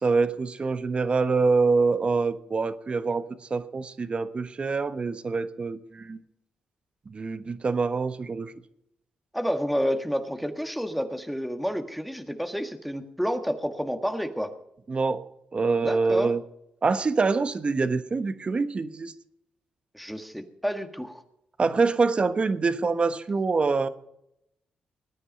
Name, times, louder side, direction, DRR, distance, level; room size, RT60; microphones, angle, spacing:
voice 1, 0.0-6.2 7.1-8.5 14.9-16.4 16.8-19.1 21.6-23.9, right 4 dB, 40° right, 11 dB, 1.3 m, -25 dB
voice 2, 9.3-14.5 15.8-16.3 19.9-21.2, equal, ahead, 6 dB, 1.7 m, -29 dB
19.5 x 9.9 x 5.3 m, 0.80 s
cardioid pair, 65°, 3 cm